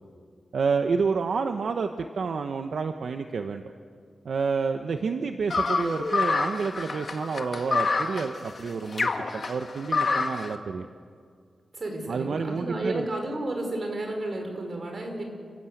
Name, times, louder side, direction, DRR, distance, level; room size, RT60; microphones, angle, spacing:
voice 1, 0.5-3.6 4.2-10.9 12.1-13.1, right 5 dB, 70° right, 6 dB, 1.0 m, -29 dB
sound 1, 5.5-10.5, left 4 dB, 50° left, 1.9 m, -27 dB
voice 2, 11.7-15.2, right 2 dB, 45° right, 3 dB, 5.3 m, -32 dB
29.5 x 16.5 x 8.0 m, 2.1 s
wide cardioid pair, 120°, 0 cm